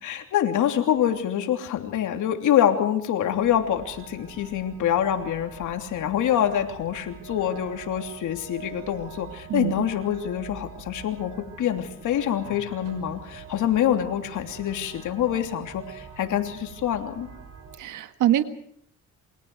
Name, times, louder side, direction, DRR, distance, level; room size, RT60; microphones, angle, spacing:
voice 1, 0.0-17.3, left 10 dB, 80° left, 5 dB, 3.1 m, -25 dB
sound 1, 3.3-17.8, right 6 dB, 55° right, 6.4 m, -44 dB
voice 2, 17.8-18.4, right 12 dB, 80° right, 10 dB, 1.7 m, -23 dB
28.0 x 23.0 x 4.8 m, 0.64 s
cardioid pair, 90°, 30 cm